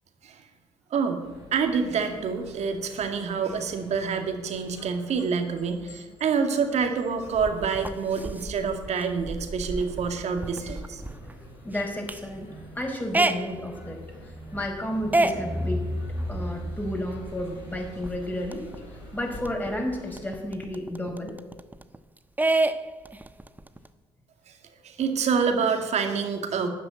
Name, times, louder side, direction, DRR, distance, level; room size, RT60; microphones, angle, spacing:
voice 1, 0.9-1.2 1.5-11.0 24.5-24.6 24.8-26.7, right 5 dB, 55° right, 6 dB, 2.3 m, -27 dB
sound 1, 1.2-20.3, left 1 dB, 80° left, 4.7 m, -49 dB
sound 2, 7.2-18.8 19.1-19.2 19.4-22.0 22.4-23.9, right 2 dB, 10° right, 1.0 m, -30 dB
voice 2, 11.6-12.5 12.8-14.0 14.5-15.9 16.3-18.6 19.1-21.3, left 1 dB, 15° left, 1 dB, 5.4 m, -32 dB
12.5 x 9.6 x 9.1 m, 1.3 s
hypercardioid pair, 50°, 14 cm